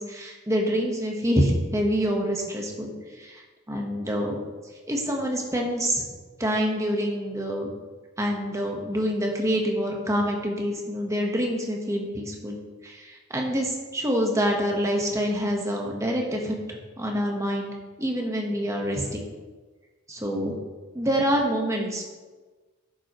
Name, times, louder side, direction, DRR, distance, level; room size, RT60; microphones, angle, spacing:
voice 1, 0.0-4.4 4.9-6.1 6.4-7.7 8.2-12.6 12.8-19.2 20.1-20.5 20.9-22.0, equal, 15° right, 0 dB, 1.3 m, -26 dB
11.0 x 7.7 x 3.1 m, 1.3 s
head